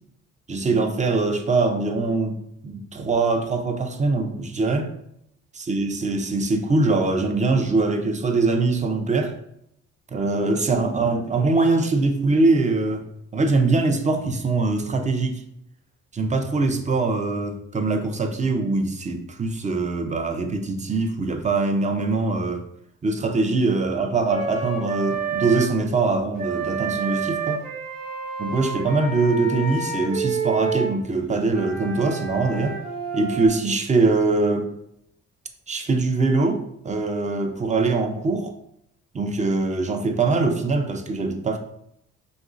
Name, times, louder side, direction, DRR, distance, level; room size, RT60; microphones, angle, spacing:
voice 1, 0.5-4.9 5.6-9.3 10.1-13.0 13.3-15.4 16.1-22.6 23.0-27.6 28.4-32.8 33.1-34.7 35.7-38.5 39.1-41.6, right 3 dB, 25° right, 6 dB, 0.6 m, -22 dB
Wind instrument woodwind instrument, 24.3-25.7 26.4-30.9 31.5-33.5, right 5 dB, 65° right, 1.1 m, -29 dB
5.2 x 3.0 x 2.5 m, 0.76 s
cardioid pair, 90°, 30 cm